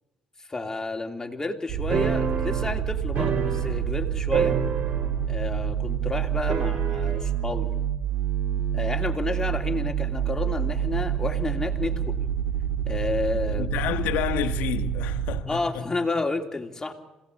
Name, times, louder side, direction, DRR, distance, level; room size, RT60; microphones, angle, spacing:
voice 1, 0.5-4.6 5.3-7.7 8.7-12.0 12.9-13.7 15.5-16.9, left 3 dB, 20° left, 3.1 m, -30 dB
sound 1, 1.7-15.4, right 9 dB, 80° right, 2.1 m, -28 dB
sound 2, 1.9-4.0 4.3-5.3 5.6-5.7 6.5-7.3, right 6 dB, 65° right, 2.9 m, -28 dB
voice 2, 13.5-15.9, left 11 dB, 80° left, 1.4 m, -29 dB
26.5 x 18.0 x 8.5 m
supercardioid pair, 65°, 3 cm